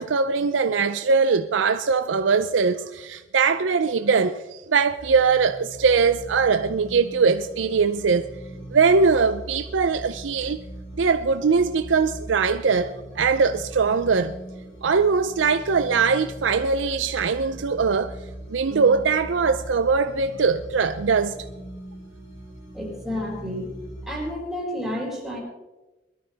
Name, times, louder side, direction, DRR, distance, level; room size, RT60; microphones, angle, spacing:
voice 1, 0.0-8.2 8.7-10.6 11.0-14.3 14.8-18.1 18.5-21.4, right 5 dB, 85° right, 0.5 m, -21 dB
sound 1, 5.0-24.3, right 1 dB, 65° left, 5.2 m, -40 dB
voice 2, 22.7-23.7 24.0-25.4, left 1 dB, ahead, 4.9 m, -30 dB
21.5 x 13.0 x 3.4 m
head